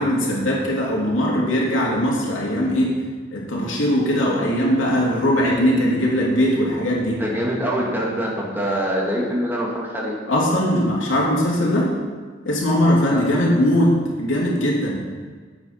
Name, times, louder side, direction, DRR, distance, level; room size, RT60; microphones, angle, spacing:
voice 1, 0.0-3.0 3.3-7.2 10.3-11.9 12.4-15.0, equal, 85° left, -4 dB, 2.8 m, -20 dB
voice 2, 7.1-10.1 13.1-13.2, equal, 10° right, -3 dB, 2.1 m, -24 dB
8.8 x 8.4 x 5.8 m, 1.5 s
head